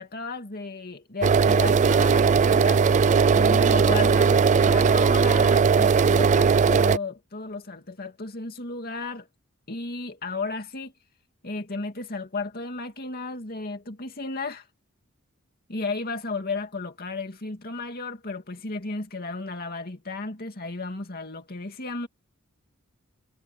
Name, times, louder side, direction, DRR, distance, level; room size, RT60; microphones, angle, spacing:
voice 1, 0.0-2.8 3.3-9.3 9.7-10.9 11.4-14.7 15.7-22.1, left 3 dB, 45° left, 2.5 m, -34 dB
sound 1, 1.2-7.0, right 5 dB, 35° right, 0.3 m, -19 dB
head